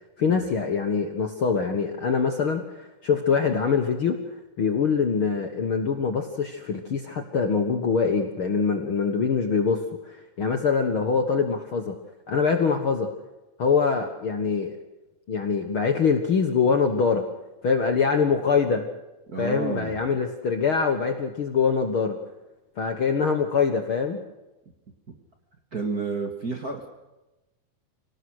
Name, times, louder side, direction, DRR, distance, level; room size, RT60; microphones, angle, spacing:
voice 1, 0.2-4.2 4.6-12.0 12.3-13.1 13.6-14.7 15.3-17.3 17.6-18.8 19.4-22.2 22.8-24.2, left 5 dB, 50° left, 6 dB, 1.7 m, -24 dB
voice 2, 19.3-20.0 25.7-26.9, right 4 dB, 35° right, 4 dB, 1.9 m, -30 dB
25.5 x 18.0 x 6.5 m, 1.0 s
omnidirectional pair, 4.0 m